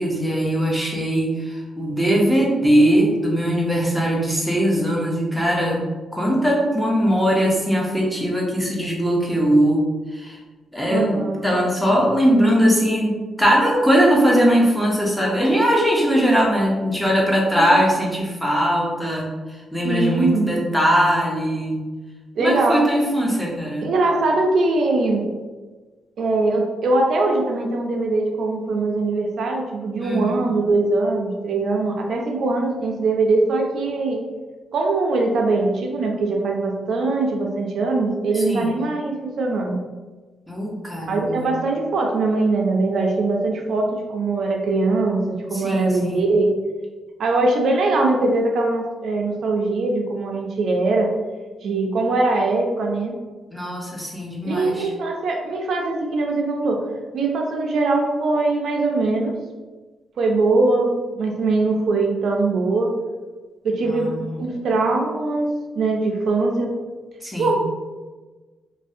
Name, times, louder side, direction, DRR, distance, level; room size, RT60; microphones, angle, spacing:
voice 1, 0.0-5.8 6.1-9.8 10.1-10.4 10.7-21.8 22.4-23.9 30.0-30.5 38.5-38.7 40.5-41.5 45.5-46.2 53.5-54.9 63.8-64.4 67.2-67.6, equal, 5° left, -3 dB, 0.5 m, -20 dB
voice 2, 10.9-11.6 17.5-17.8 19.8-20.5 22.4-22.9 23.8-25.3 26.2-34.2 34.7-39.8 41.1-46.5 47.2-51.1 51.6-53.2 54.4-56.9 57.1-59.4 60.2-62.9 63.6-66.7 67.4-67.6, right 3 dB, 65° right, 1 dB, 0.3 m, -21 dB
2.5 x 2.0 x 2.5 m, 1.3 s
cardioid pair, 130°, 0 cm